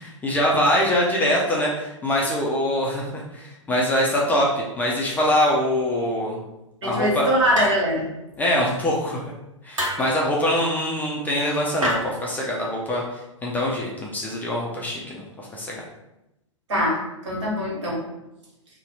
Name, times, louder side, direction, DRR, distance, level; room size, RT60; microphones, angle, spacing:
voice 1, 0.0-6.4 6.8-7.3 8.4-9.2 9.6-15.8, left 1 dB, 10° left, -3 dB, 0.4 m, -23 dB
voice 2, 6.8-8.1 16.7-18.0, equal, 60° right, -4 dB, 1.4 m, -23 dB
sound 1, 7.5-8.1 9.8-10.1 11.8-11.9, equal, 85° right, 0.9 m, -26 dB
2.6 x 2.1 x 3.9 m, 0.93 s
figure-of-eight pair, 105°, 16 cm